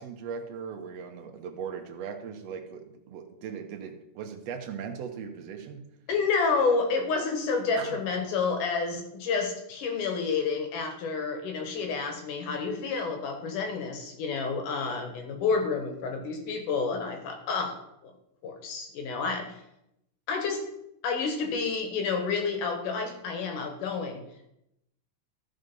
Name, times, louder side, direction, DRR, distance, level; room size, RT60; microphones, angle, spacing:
voice 1, 0.0-5.9 7.8-8.0, right 7 dB, 65° right, 5 dB, 1.9 m, -39 dB
voice 2, 6.1-17.7 18.0-18.1 18.4-19.5 20.3-20.6 21.0-24.2, left 4 dB, 85° left, 4 dB, 3.0 m, -29 dB
14.0 x 5.3 x 5.3 m, 0.82 s
omnidirectional pair, 3.6 m